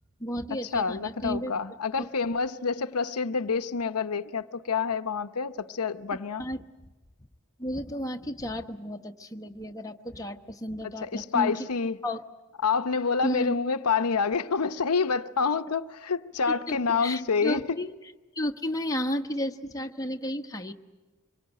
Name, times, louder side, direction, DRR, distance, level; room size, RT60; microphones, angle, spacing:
voice 1, 0.2-1.5 2.0-2.1 6.4-6.6 7.6-11.7 12.0-12.2 13.2-13.6 16.7-17.9 18.3-20.7, equal, 15° left, 1.1 m, -33 dB
voice 2, 0.7-6.4 11.0-12.0 12.6-17.6, left 5 dB, 90° left, 0.8 m, -27 dB
25.0 x 23.0 x 9.1 m
head